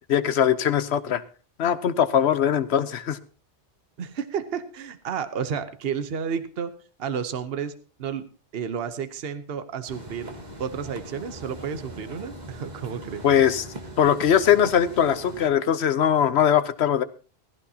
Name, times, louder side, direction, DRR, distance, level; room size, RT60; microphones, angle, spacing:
voice 1, 0.1-1.2 1.6-3.2 13.2-13.6 14.0-17.0, left 9 dB, 75° left, 13 dB, 1.1 m, -21 dB
voice 2, 4.0-6.7 7.0-7.7 8.0-8.2 8.5-10.3 10.6-13.2, right 7 dB, 65° right, 11 dB, 1.1 m, -31 dB
sound 1, 9.9-15.5, right 1 dB, 40° right, 1.9 m, -40 dB
16.5 x 15.5 x 2.8 m, 0.36 s
omnidirectional pair, 1.1 m